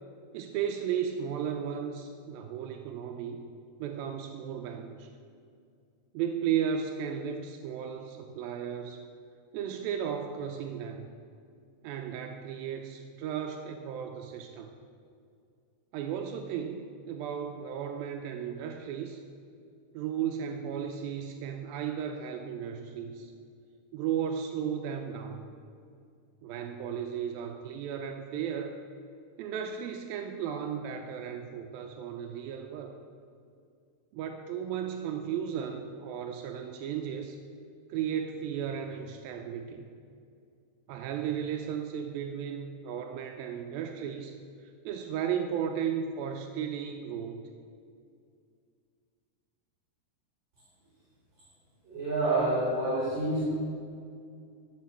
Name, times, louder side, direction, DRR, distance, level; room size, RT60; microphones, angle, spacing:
voice 1, 0.3-3.4 3.8-5.1 6.1-9.0 9.5-11.1 11.8-14.7 15.9-19.2 19.9-23.3 23.9-25.4 26.4-28.8 29.4-33.0 34.1-37.4 37.9-39.9 40.9-44.4 44.6-47.5, right 8 dB, 85° right, 5 dB, 2.1 m, -35 dB
voice 2, 51.9-53.4, right 2 dB, 45° right, -9 dB, 3.8 m, -28 dB
12.5 x 6.4 x 7.1 m, 2.3 s
omnidirectional pair, 4.8 m